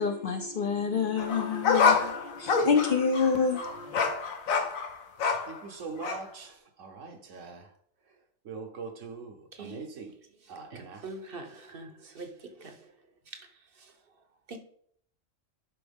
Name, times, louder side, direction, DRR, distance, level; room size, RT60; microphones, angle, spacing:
voice 1, 0.0-4.2, left 5 dB, 50° left, 0.8 m, -28 dB
sound 1, 1.2-5.6 6.0-6.2, left 5 dB, 80° left, 1.3 m, -27 dB
voice 2, 5.5-6.5 6.8-7.6 8.5-9.3 9.6-10.1 10.5-11.0, right 4 dB, 70° right, 1.3 m, -41 dB
voice 3, 10.7-11.9 12.2-12.3 12.6-12.7 14.5-14.6, right 3 dB, 50° right, 0.9 m, -42 dB
11.0 x 4.5 x 3.6 m
omnidirectional pair, 1.4 m